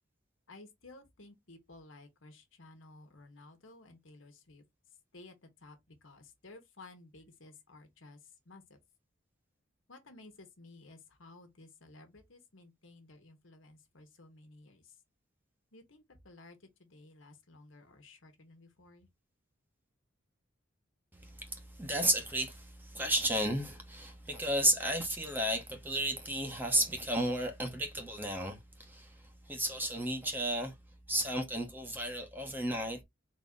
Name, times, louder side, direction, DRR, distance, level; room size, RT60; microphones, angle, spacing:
voice 1, 0.5-4.6 5.1-8.2 8.4-8.8 9.9-15.0 15.7-19.1, left 2 dB, 80° left, 1.3 m, -55 dB
voice 2, 21.1-30.7 31.1-33.0, right 1 dB, 10° right, 1.0 m, -33 dB
4.0 x 2.9 x 3.7 m
head